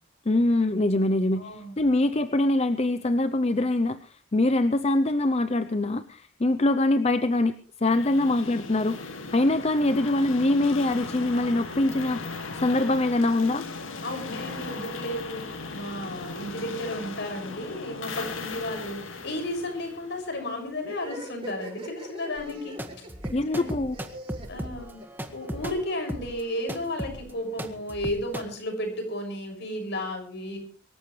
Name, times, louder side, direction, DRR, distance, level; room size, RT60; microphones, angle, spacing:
voice 1, 0.3-7.5 7.8-13.6 23.3-24.0, left 2 dB, 30° left, 11 dB, 0.6 m, -24 dB
voice 2, 1.4-1.8 14.0-22.8 23.5-23.7 24.5-25.0 25.3-30.6, left 1 dB, 60° left, 4 dB, 6.4 m, -33 dB
sound 1, 7.9-20.7, left 3 dB, 80° left, 2.4 m, -38 dB
sound 2, 20.8-25.5, right 1 dB, 30° right, 6.0 m, -41 dB
sound 3, 22.4-28.4, equal, 10° right, 1.7 m, -36 dB
24.0 x 14.5 x 3.3 m, 0.38 s
head